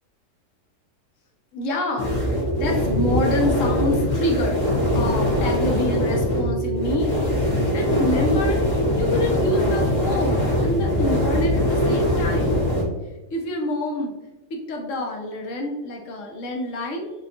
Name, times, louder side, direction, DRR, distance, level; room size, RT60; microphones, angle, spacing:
voice 1, 1.5-2.1 2.6-4.6 4.9-7.2 7.7-8.6 8.9-12.6 13.3-14.1 14.5-17.1, left 1 dB, 60° left, 1 dB, 1.0 m, -27 dB
sound 1, 2.0-12.8, left 1 dB, 80° left, 1.7 m, -22 dB
5.0 x 2.3 x 2.7 m, 1.1 s
omnidirectional pair, 1.7 m